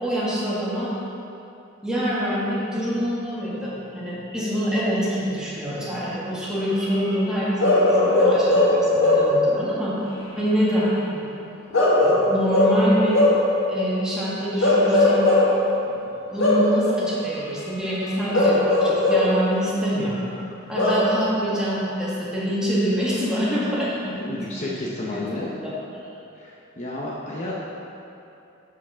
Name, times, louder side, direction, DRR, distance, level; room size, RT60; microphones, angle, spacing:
voice 1, 0.0-0.9 1.8-11.3 12.0-13.2 13.7-15.3 15.9-16.0 16.3-20.2 20.7-24.4 24.6-24.7 25.1-25.8, equal, 5° right, -8 dB, 1.8 m, -25 dB
Bark / Livestock farm animals working animals, 7.6-9.4 11.7-13.5 14.6-15.6 16.4-16.8 18.3-19.4 20.7-21.1, left 2 dB, 80° left, 1.7 m, -18 dB
voice 2, 24.2-25.5 26.4-27.5, left 2 dB, 35° left, -5 dB, 0.8 m, -31 dB
7.4 x 6.5 x 5.7 m, 2.7 s
head